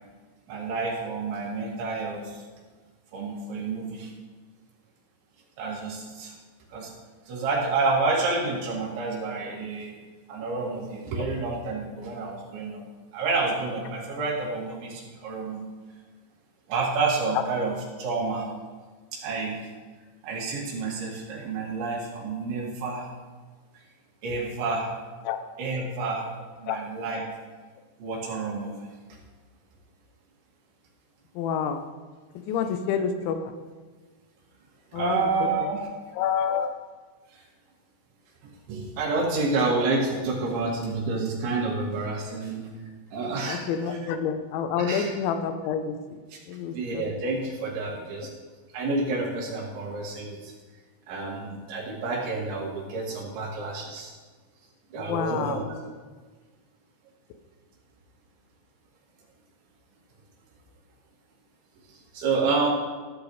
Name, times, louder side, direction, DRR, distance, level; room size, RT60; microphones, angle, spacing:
voice 1, 0.5-2.4 3.1-4.1 5.6-6.3 6.7-6.9 7.3-9.9 10.3-12.8 13.1-15.6 16.7-18.5 19.1-19.6 20.2-23.1 24.2-24.9 25.6-26.3 26.6-27.2 28.0-28.9 34.9-35.9 37.3-37.4 38.7-42.6 43.1-43.6 44.8-45.1 46.3-46.4 46.7-48.3 48.7-50.5 51.1-54.1 54.9-55.6 62.1-62.7, right 3 dB, 75° right, -3 dB, 4.7 m, -29 dB
voice 2, 31.3-31.8 32.5-33.6 34.9-35.7 36.1-36.7 43.5-46.2 46.5-47.3 48.2-48.3 55.0-55.7, left 7 dB, 80° left, 8 dB, 3.1 m, -28 dB
15.0 x 12.0 x 3.3 m, 1.4 s
omnidirectional pair, 5.4 m